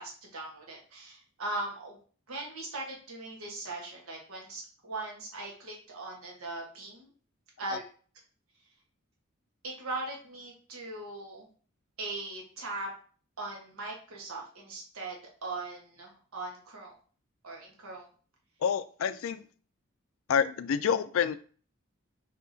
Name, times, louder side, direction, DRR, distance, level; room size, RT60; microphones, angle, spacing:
voice 1, 0.0-2.0 2.3-7.1 7.6-7.8 9.6-11.5 12.0-12.9 13.4-15.1 15.4-16.9 17.4-18.0, right 2 dB, 90° right, -1 dB, 1.3 m, -39 dB
voice 2, 18.6-19.4 20.3-21.4, left 7 dB, 75° left, 14 dB, 0.3 m, -28 dB
5.5 x 2.9 x 2.7 m, 0.42 s
head